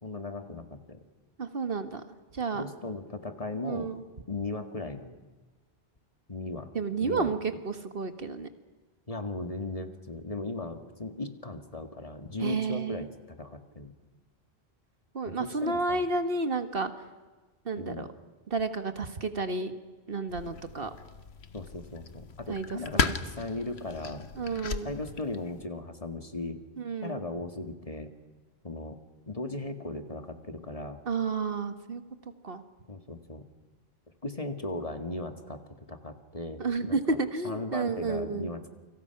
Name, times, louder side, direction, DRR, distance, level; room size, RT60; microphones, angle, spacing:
voice 1, 0.0-1.0 2.5-3.9 4.3-5.2 6.3-6.7 7.0-7.3 9.1-13.9 15.3-16.0 17.8-18.1 21.5-24.3 24.8-26.6 27.0-28.1 28.6-31.0 32.9-33.4 34.2-36.6 36.9-37.2 37.4-38.7, left 2 dB, 35° left, 7 dB, 2.0 m, -37 dB
voice 2, 1.4-2.0 2.3-2.6 3.6-4.0 6.8-8.5 12.4-13.1 15.1-16.9 17.7-18.1 18.5-19.7 20.1-20.9 22.5-22.7 23.0-23.2 24.4-24.9 26.8-27.2 31.1-32.0 32.4-32.6 36.6-38.5, right 4 dB, 60° right, 9 dB, 1.7 m, -31 dB
sound 1, 20.3-25.7, left 5 dB, 85° left, 1.4 m, -35 dB
29.0 x 26.0 x 5.9 m, 1.3 s
omnidirectional pair, 1.1 m